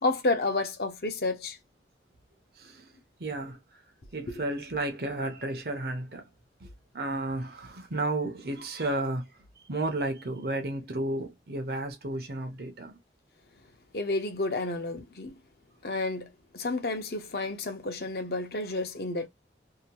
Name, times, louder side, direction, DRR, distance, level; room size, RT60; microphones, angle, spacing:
voice 1, 0.0-1.6 13.9-15.3 15.8-19.3, left 2 dB, 60° left, 0.7 m, -30 dB
voice 2, 2.5-2.9 3.2-3.8 4.1-6.3 6.6-13.0, right 2 dB, 60° right, 0.7 m, -33 dB
2.8 x 2.2 x 2.8 m
head